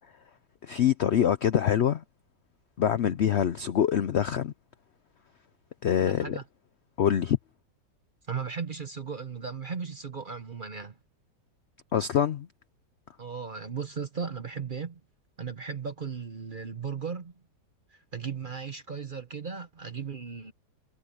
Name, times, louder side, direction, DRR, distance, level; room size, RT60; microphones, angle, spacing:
voice 1, 0.6-2.0 2.8-4.5 5.8-6.4 7.0-7.4 11.9-12.5, left 9 dB, 75° left, 0.6 m, -25 dB
voice 2, 5.9-6.4 8.3-11.0 13.2-15.0 15.4-17.3 17.9-20.5, right 6 dB, 40° right, 0.8 m, -36 dB
omnidirectional pair, 1.9 m